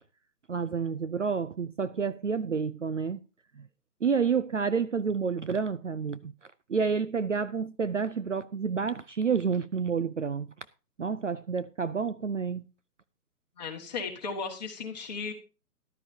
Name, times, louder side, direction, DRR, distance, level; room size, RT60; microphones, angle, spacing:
voice 1, 0.5-3.2 3.6-3.7 4.0-6.3 6.7-10.5 11.0-12.6, right 6 dB, 50° right, 0.5 m, -29 dB
voice 2, 13.6-15.3, left 5 dB, 25° left, 1.9 m, -35 dB
13.5 x 12.0 x 2.8 m
hypercardioid pair, 175°, 48 cm